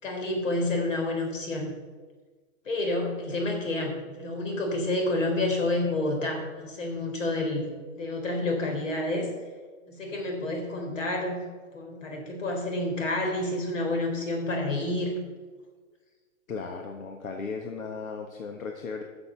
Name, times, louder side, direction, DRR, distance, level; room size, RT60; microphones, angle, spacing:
voice 1, 0.0-1.7 2.7-7.7 7.9-9.3 9.9-11.4 11.7-15.2, left 2 dB, 70° left, 2 dB, 4.1 m, -29 dB
voice 2, 16.5-19.0, left 4 dB, 85° left, 4 dB, 1.5 m, -36 dB
12.0 x 7.0 x 6.8 m, 1.4 s
hypercardioid pair, 180°, 40 cm